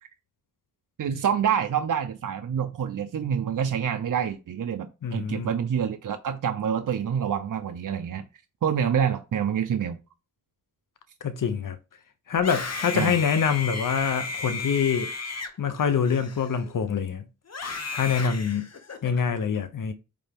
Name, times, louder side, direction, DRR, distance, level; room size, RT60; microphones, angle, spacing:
voice 1, 1.0-8.2 8.6-10.0 12.9-13.2, right 8 dB, 80° right, 0.6 m, -27 dB
voice 2, 5.0-5.5 11.2-11.8 12.3-15.1 15.6-17.2 17.9-18.7 19.0-19.9, left 7 dB, 80° left, 0.7 m, -25 dB
Screaming, 12.3-16.8 17.5-19.2, left 4 dB, 55° left, 1.0 m, -34 dB
8.5 x 3.3 x 3.5 m
wide cardioid pair, 80°, 32 cm